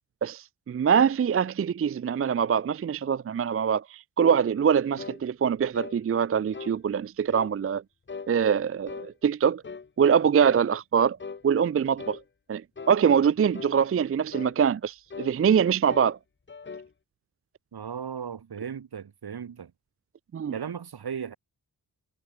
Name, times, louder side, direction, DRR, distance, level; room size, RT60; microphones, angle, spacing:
voice 1, 0.2-7.8 8.3-9.6 10.0-11.2 11.4-12.2 12.5-16.2 20.3-20.5, right 7 dB, 35° right, 0.4 m, -24 dB
sound 1, 5.0-5.2 5.7-6.0 6.5-6.8 7.3-7.6 8.1-8.3 8.9-9.1 9.6-9.9 10.4-10.7 11.2-11.4 12.0-12.2 12.8-13.0 13.5-13.8 14.3-14.6 15.1-15.4 15.9-16.2 16.5-16.9, left 5 dB, 30° left, 1.0 m, -40 dB
voice 2, 17.7-19.7 20.5-21.4, right 7 dB, 75° right, 3.4 m, -36 dB
wide cardioid pair, 180°, 39 cm